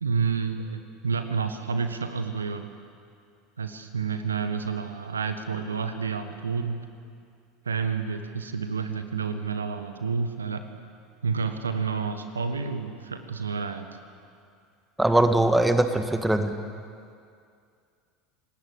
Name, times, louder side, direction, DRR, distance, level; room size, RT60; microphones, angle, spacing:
voice 1, 0.0-2.7 3.6-6.9 7.6-10.6 11.2-13.9, right 5 dB, 75° right, 8 dB, 1.5 m, -29 dB
voice 2, 15.0-16.5, right 1 dB, 5° right, 7 dB, 1.9 m, -21 dB
27.0 x 19.5 x 8.3 m, 2.3 s
figure-of-eight pair, 70°, 0 cm